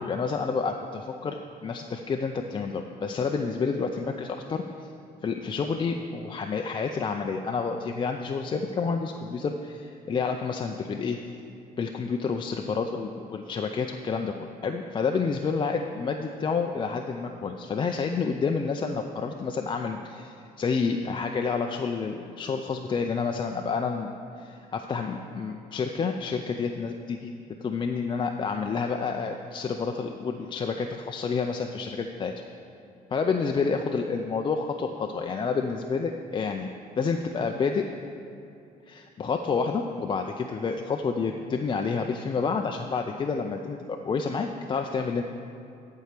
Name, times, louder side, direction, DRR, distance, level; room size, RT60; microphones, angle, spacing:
voice 1, 0.0-4.9 5.2-11.2 11.8-24.1 24.4-27.3 27.6-32.3 33.1-37.9 38.9-45.2, left 5 dB, 30° left, 4 dB, 0.4 m, -29 dB
11.0 x 4.6 x 6.6 m, 2.6 s
cardioid pair, 110°, 17 cm